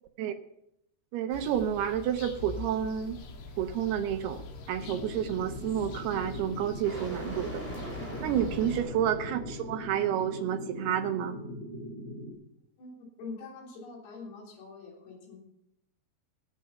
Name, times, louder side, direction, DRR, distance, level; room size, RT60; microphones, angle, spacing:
voice 1, 1.1-3.2 3.6-7.6 8.2-11.4, right 9 dB, 80° right, 7 dB, 2.5 m, -30 dB
sound 1, 1.3-8.8, left 4 dB, 90° left, 4.0 m, -44 dB
sound 2, 3.0-10.0, right 1 dB, 5° left, 2.6 m, -44 dB
sound 3, 4.8-12.3, equal, 40° right, 3.3 m, -41 dB
voice 2, 12.8-15.4, left 4 dB, 70° left, -1 dB, 5.4 m, -44 dB
18.5 x 7.6 x 5.6 m, 0.80 s
omnidirectional pair, 5.2 m